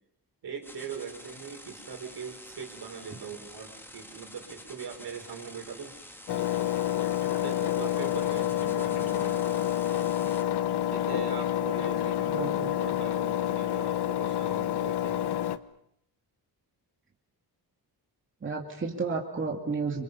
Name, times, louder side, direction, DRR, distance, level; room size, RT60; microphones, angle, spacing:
voice 1, 0.4-6.0 7.3-9.5 10.9-15.3, right 6 dB, 75° right, 3 dB, 5.3 m, -41 dB
sound 1, 0.6-10.4, left 1 dB, 5° left, 2.0 m, -48 dB
Engine, 6.3-15.6, left 12 dB, 80° left, 1.1 m, -28 dB
voice 2, 12.2-12.8 18.4-20.0, right 4 dB, 30° right, -1 dB, 2.9 m, -32 dB
28.0 x 27.0 x 5.6 m, 0.75 s
wide cardioid pair, 160°, 39 cm